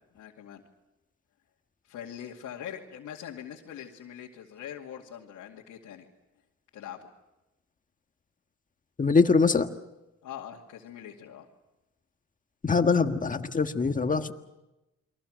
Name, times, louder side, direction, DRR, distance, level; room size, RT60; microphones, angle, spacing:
voice 1, 0.1-0.6 1.8-6.1 6.7-7.1 10.2-11.5, left 9 dB, 80° left, -2 dB, 2.4 m, -42 dB
voice 2, 9.0-9.7 12.6-14.3, left 4 dB, 25° left, 7 dB, 1.6 m, -23 dB
29.5 x 22.5 x 6.4 m, 0.97 s
cardioid pair, 90°, 30 cm